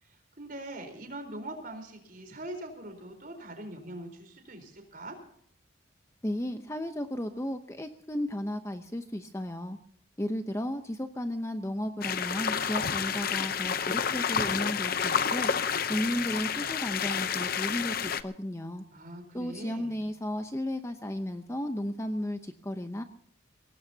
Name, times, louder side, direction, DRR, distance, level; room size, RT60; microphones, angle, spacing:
voice 1, 0.0-5.2 18.9-20.1, right 1 dB, 45° right, 4 dB, 4.1 m, -42 dB
voice 2, 6.2-9.8 10.2-15.5 15.9-18.8 19.3-23.0, left 1 dB, 15° left, 7 dB, 0.7 m, -34 dB
sound 1, 12.0-18.2, left 7 dB, 45° left, 0.7 m, -30 dB
23.0 x 18.0 x 2.8 m, 0.63 s
head